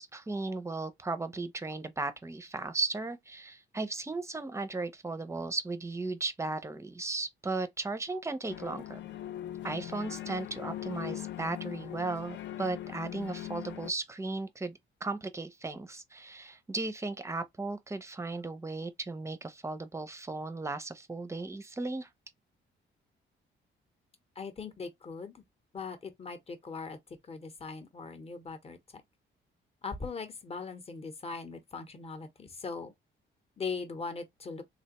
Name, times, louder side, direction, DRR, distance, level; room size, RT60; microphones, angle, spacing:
voice 1, 0.0-9.0 9.6-22.1, right 3 dB, 15° right, 0.5 m, -36 dB
sound 1, 8.5-13.9, left 12 dB, 60° left, 0.5 m, -40 dB
voice 2, 24.4-25.3 25.7-27.0 27.3-28.8 29.8-32.9 33.6-34.6, left 4 dB, 30° left, 0.8 m, -40 dB
3.3 x 2.5 x 2.9 m
cardioid pair, 115°, 20 cm